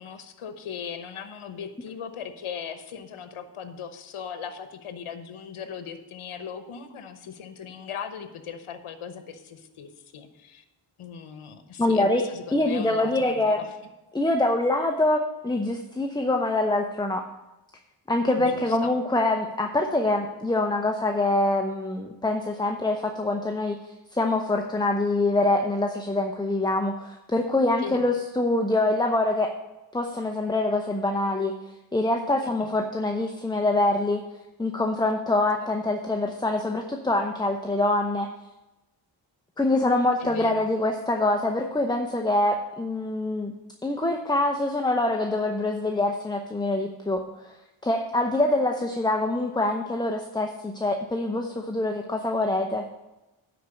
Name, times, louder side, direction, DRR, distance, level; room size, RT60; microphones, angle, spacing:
voice 1, 0.0-10.6 11.0-13.7 18.4-18.9 27.8-28.0 32.6-32.7 40.2-40.7, left 7 dB, 75° left, 8 dB, 1.1 m, -38 dB
voice 2, 11.8-12.2 12.5-13.6 14.1-17.3 18.1-23.7 24.1-29.5 29.9-31.5 31.9-34.2 34.6-38.3 39.6-43.5 43.8-47.2 47.4-47.5 47.8-52.8, left 2 dB, 10° left, 4 dB, 0.8 m, -25 dB
10.5 x 4.5 x 7.0 m, 1.0 s
cardioid pair, 75°, 49 cm